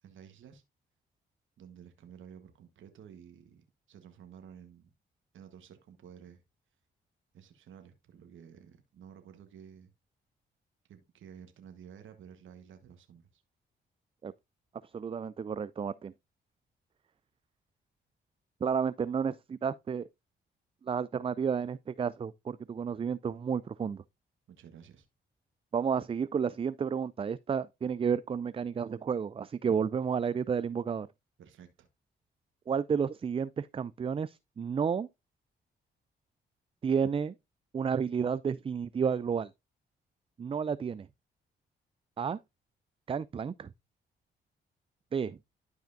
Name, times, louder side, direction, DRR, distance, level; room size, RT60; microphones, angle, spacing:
voice 1, 0.0-0.6 1.6-4.9 5.3-6.4 7.3-9.9 10.9-13.4 24.5-25.1 31.4-31.9, right 8 dB, 70° right, 1.3 m, -52 dB
voice 2, 14.9-16.1 18.6-20.1 20.8-24.0 25.7-31.1 32.7-35.1 36.8-37.3 37.7-39.5 40.4-41.1 42.2-42.4 43.1-43.7 45.1-45.4, right 6 dB, 25° right, 0.3 m, -31 dB
12.0 x 4.9 x 2.6 m
supercardioid pair, 55°, 21 cm